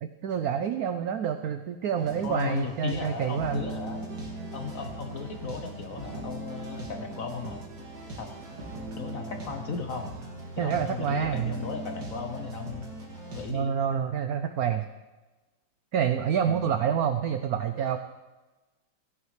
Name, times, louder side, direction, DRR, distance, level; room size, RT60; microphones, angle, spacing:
voice 1, 0.0-3.6 10.6-11.5 13.5-14.8 15.9-18.0, right 8 dB, 80° right, 8 dB, 0.8 m, -28 dB
sound 1, 1.9-13.5, right 2 dB, 55° right, 2.7 m, -39 dB
voice 2, 2.2-4.1 4.5-7.6 8.2-8.3 9.0-10.1 10.6-12.8 13.3-13.7 16.5-16.8, left 5 dB, 55° left, 5 dB, 0.9 m, -36 dB
16.5 x 10.5 x 3.3 m, 1.2 s
omnidirectional pair, 2.2 m